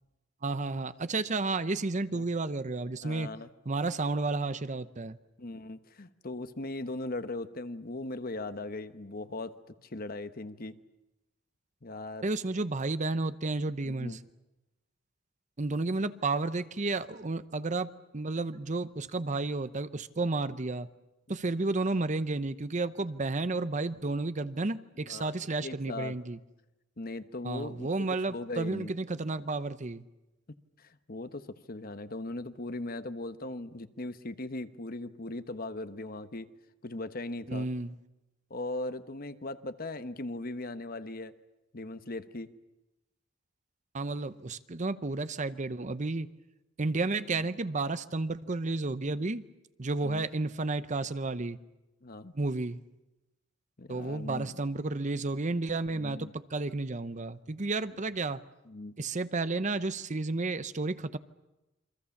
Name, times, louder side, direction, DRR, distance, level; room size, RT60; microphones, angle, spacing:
voice 1, 0.4-3.3 3.7-5.2 12.2-14.2 15.6-20.9 21.3-26.4 27.4-30.0 37.5-38.0 43.9-46.3 46.8-49.5 49.8-51.6 52.3-52.8 53.9-58.4 59.0-61.2, right 3 dB, 40° right, 0.8 m, -32 dB
voice 2, 3.0-3.5 5.4-10.8 11.8-12.3 13.8-14.2 25.0-26.1 27.0-27.9 28.3-28.9 30.8-36.5 36.8-37.7 38.5-41.3 41.7-42.5 47.3-47.5 50.0-50.3 52.0-52.3 53.8-54.5 55.9-56.3 58.7-58.9, left 2 dB, 50° left, 1.1 m, -39 dB
28.0 x 24.5 x 7.2 m
head